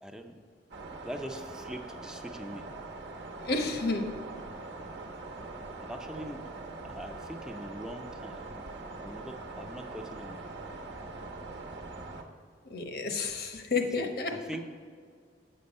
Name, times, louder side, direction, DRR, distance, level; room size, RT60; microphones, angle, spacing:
voice 1, 0.0-0.4 1.0-2.6 5.8-6.5 6.8-8.5 9.0-10.5 14.0-14.7, equal, 5° right, 5 dB, 0.5 m, -42 dB
sound 1, 0.7-12.2, right 3 dB, 75° right, 1.0 m, -42 dB
voice 2, 3.4-4.1 12.6-14.3, left 3 dB, 60° left, 5 dB, 0.9 m, -31 dB
8.6 x 6.7 x 5.3 m, 2.1 s
head